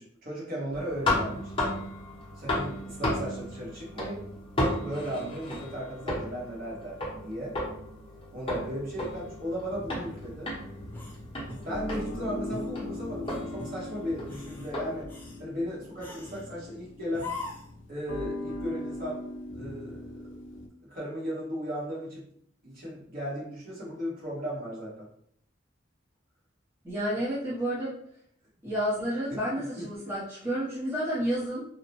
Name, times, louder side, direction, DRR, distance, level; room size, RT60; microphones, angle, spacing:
voice 1, 0.0-1.5 2.4-4.2 4.6-7.5 8.3-10.5 11.6-15.1 15.4-17.3 17.9-19.2 19.5-20.2 20.9-22.2 22.6-25.1 29.5-29.9, equal, 45° right, -6 dB, 1.2 m, -36 dB
sound 1, 0.7-15.0, left 1 dB, 25° left, 0.8 m, -34 dB
sound 2, 9.7-20.7, left 2 dB, 70° left, 0.4 m, -40 dB
sound 3, 10.9-12.1 12.5-12.8 13.2-13.8 14.2-14.7 15.1-15.4 16.0-16.5 17.1-17.8, left 3 dB, 10° left, 0.4 m, -42 dB
voice 2, 26.8-27.9 28.6-31.7, equal, 10° right, -10 dB, 0.7 m, -30 dB
2.8 x 2.1 x 2.9 m, 0.66 s
head